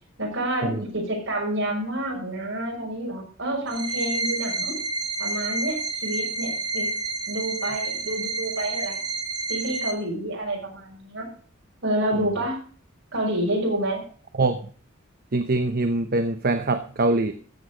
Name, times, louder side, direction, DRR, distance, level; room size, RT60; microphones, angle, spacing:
voice 1, 0.2-4.8 5.2-6.9 7.3-9.0 9.5-11.3 11.8-12.6 13.1-14.0, right 1 dB, 65° right, 0 dB, 5.8 m, -28 dB
sound 1, 3.7-9.9, right 3 dB, 25° right, 1.9 m, -29 dB
voice 2, 15.3-17.3, right 2 dB, 45° right, 8 dB, 0.8 m, -23 dB
14.5 x 7.9 x 5.1 m, 0.43 s
head